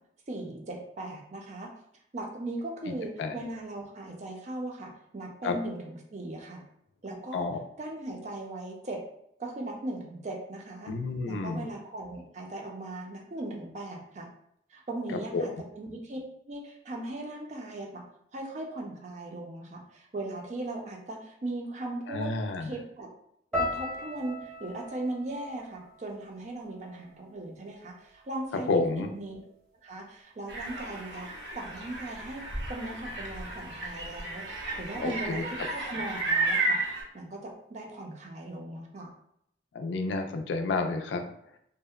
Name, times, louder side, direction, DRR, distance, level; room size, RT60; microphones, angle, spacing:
voice 1, 0.3-1.7 2.1-6.6 7.0-7.5 7.8-9.0 9.4-10.9 11.2-14.3 14.7-16.2 16.5-18.0 18.3-22.3 22.6-23.1 23.5-29.4 29.8-31.3 31.5-32.4 32.7-36.8 37.1-39.1, right 2 dB, 40° right, 0 dB, 0.4 m, -38 dB
voice 2, 2.9-3.3 5.4-5.5 7.3-7.6 10.9-11.7 15.3-15.6 22.1-22.7 28.7-29.1 35.0-35.4 39.7-41.2, left 3 dB, 80° left, 5 dB, 0.3 m, -30 dB
sound 1, 23.5-27.7 28.0-28.8 29.4-29.6, left 2 dB, 5° left, 0.6 m, -38 dB
sound 2, 30.5-37.0, right 2 dB, 90° right, 0.6 m, -33 dB
2.7 x 2.0 x 2.3 m, 0.73 s
head